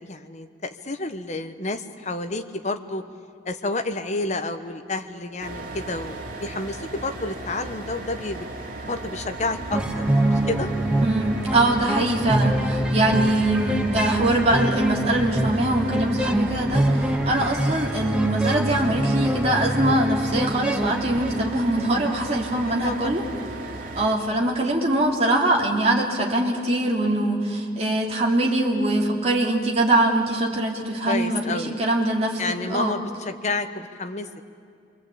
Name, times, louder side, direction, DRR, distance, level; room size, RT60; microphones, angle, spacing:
voice 1, 0.0-3.0 3.4-8.5 8.8-10.0 10.3-10.7 12.3-12.5 17.4-17.6 22.8-23.2 31.1-31.8 32.4-34.3, left 2 dB, 40° left, 7 dB, 1.2 m, -30 dB
sound 1, 5.4-24.1, right 2 dB, 50° right, 2.6 m, -36 dB
sound 2, 9.4-17.5, equal, 10° left, 5.2 m, -37 dB
sound 3, 9.7-22.0, right 1 dB, 5° right, 1.1 m, -25 dB
voice 2, 11.0-23.2 24.0-32.4 32.7-32.9, right 1 dB, 35° right, -1 dB, 3.1 m, -23 dB
28.0 x 23.0 x 8.6 m, 2.4 s
head